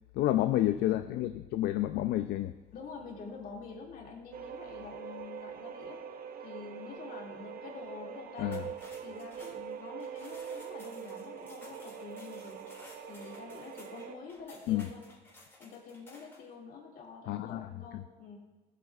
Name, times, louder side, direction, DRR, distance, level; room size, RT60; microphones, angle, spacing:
voice 1, 0.1-2.5 8.4-8.6 14.7-14.9 17.3-17.7 17.9-18.0, left 14 dB, 75° left, 10 dB, 0.4 m, -29 dB
voice 2, 2.7-6.0 6.4-8.7 9.0-12.6 13.1-15.0 15.6-18.4, left 4 dB, 55° left, -1 dB, 2.2 m, -47 dB
sound 1, 4.3-14.2, right 7 dB, 60° right, 0.8 m, -43 dB
sound 2, 8.4-16.5, left 2 dB, 15° left, 3.3 m, -56 dB
17.0 x 8.2 x 2.4 m, 1.3 s
cardioid pair, 110°, 17 cm